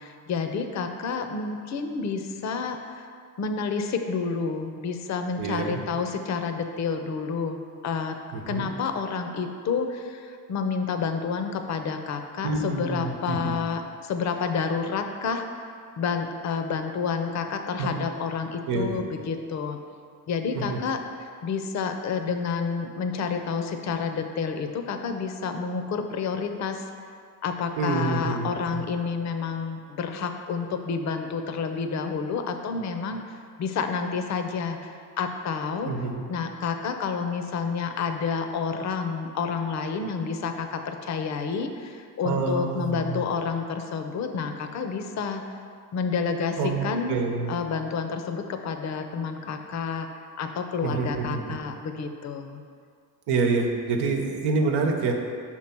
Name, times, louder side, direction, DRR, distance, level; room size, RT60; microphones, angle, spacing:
voice 1, 0.0-3.1 3.4-8.2 8.5-15.7 16.0-19.8 20.3-26.9 27.4-35.9 36.3-45.4 45.9-47.1 47.5-50.1 50.4-52.6, left 5 dB, 45° left, 6 dB, 0.6 m, -29 dB
voice 2, 5.4-5.8 8.3-8.7 12.4-13.6 17.8-17.9 18.7-19.0 20.5-20.8 27.8-28.8 35.9-36.2 42.2-43.2 46.6-47.6 50.8-51.6 53.3-55.1, right 4 dB, 90° right, 2 dB, 1.0 m, -27 dB
5.8 x 4.5 x 5.9 m, 2.2 s
cardioid pair, 125°, 39 cm